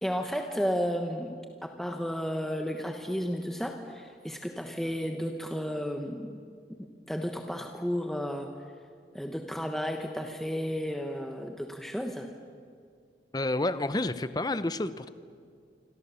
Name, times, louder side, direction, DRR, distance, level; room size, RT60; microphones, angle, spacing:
voice 1, 0.0-1.4 1.6-6.4 7.1-8.5 9.1-12.3, equal, ahead, 3 dB, 1.1 m, -33 dB
voice 2, 13.3-15.1, left 2 dB, 20° left, 13 dB, 0.7 m, -29 dB
26.5 x 26.0 x 7.0 m, 2.2 s
head